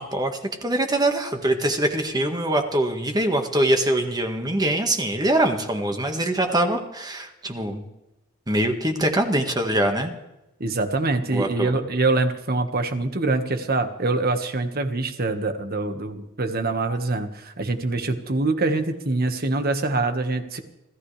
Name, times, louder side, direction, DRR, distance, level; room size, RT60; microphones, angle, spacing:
voice 1, 0.0-7.8 8.5-10.1 11.3-11.7, right 1 dB, 20° right, 5 dB, 1.7 m, -23 dB
voice 2, 10.6-20.6, right 2 dB, 50° right, 7 dB, 1.7 m, -24 dB
26.0 x 15.0 x 3.4 m, 0.92 s
head